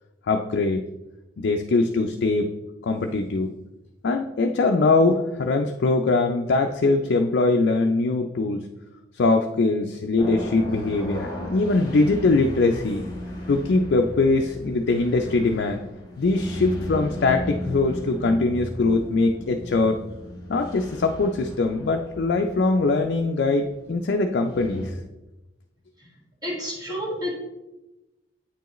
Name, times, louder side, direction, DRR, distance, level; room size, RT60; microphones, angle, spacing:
voice 1, 0.3-0.8 1.4-2.5 2.8-3.5 4.0-8.6 9.2-13.0 13.5-15.8 16.2-20.0 20.5-24.9, left 3 dB, 60° left, 4 dB, 0.4 m, -22 dB
sound 1, 10.2-24.9, left 1 dB, 25° left, 1.6 m, -36 dB
voice 2, 26.4-27.3, equal, 20° right, -4 dB, 2.0 m, -29 dB
8.5 x 4.6 x 3.0 m, 1.0 s
head